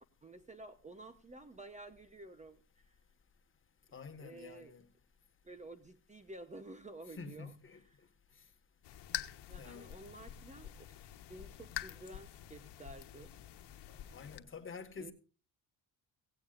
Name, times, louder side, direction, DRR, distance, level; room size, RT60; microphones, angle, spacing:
voice 1, 0.2-2.9 4.2-4.7 5.4-7.5 9.5-10.7 11.0-13.3 15.0-15.1, right 2 dB, 15° right, 0.9 m, -51 dB
voice 2, 3.9-4.8 7.1-7.8 9.6-9.9 14.1-15.1, left 5 dB, 30° left, 1.7 m, -48 dB
sound 1, 8.8-14.4, left 13 dB, 75° left, 1.3 m, -46 dB
17.0 x 16.5 x 2.5 m
cardioid pair, 150°, 41 cm